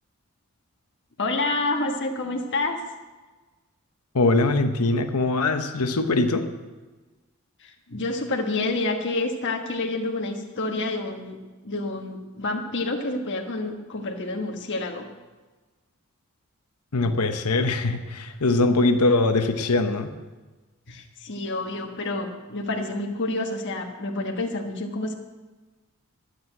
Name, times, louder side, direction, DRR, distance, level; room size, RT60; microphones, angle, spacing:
voice 1, 1.2-2.8 7.6-11.4 11.6-15.1 20.9-25.1, left 2 dB, 55° left, 2 dB, 1.3 m, -28 dB
voice 2, 4.1-6.5 16.9-20.1, left 2 dB, 90° left, 7 dB, 1.0 m, -22 dB
12.5 x 8.0 x 7.8 m, 1.3 s
head